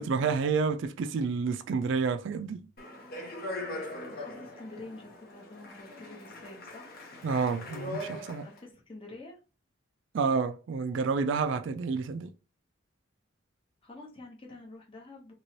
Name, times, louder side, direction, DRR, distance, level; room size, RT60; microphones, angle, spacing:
voice 1, 0.0-2.7 7.2-8.5 10.1-12.3, right 5 dB, 60° right, 0.3 m, -29 dB
Speech, 2.8-8.6, left 1 dB, 45° left, 0.9 m, -41 dB
voice 2, 4.1-7.0 8.4-9.4 13.8-15.3, left 2 dB, 25° left, 0.8 m, -48 dB
3.1 x 2.9 x 2.8 m
head